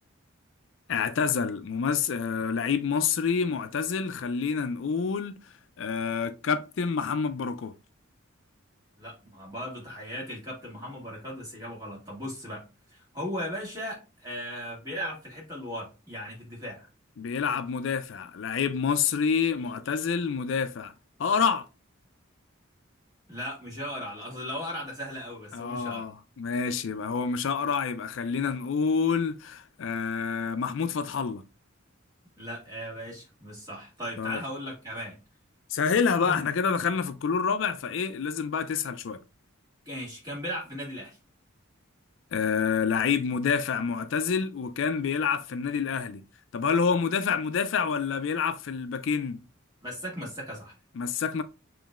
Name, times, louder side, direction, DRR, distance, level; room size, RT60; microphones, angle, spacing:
voice 1, 0.9-5.4 5.8-7.7 17.2-20.9 21.2-21.7 25.5-31.4 34.2-34.4 35.7-39.2 42.3-46.2 46.5-49.4 51.0-51.4, left 6 dB, 65° left, 0.4 m, -27 dB
voice 2, 9.0-12.6 12.9-16.9 23.3-26.0 32.4-35.2 36.2-36.4 39.9-41.2 49.8-50.7, equal, 20° right, 2.1 m, -37 dB
7.0 x 3.1 x 2.4 m
head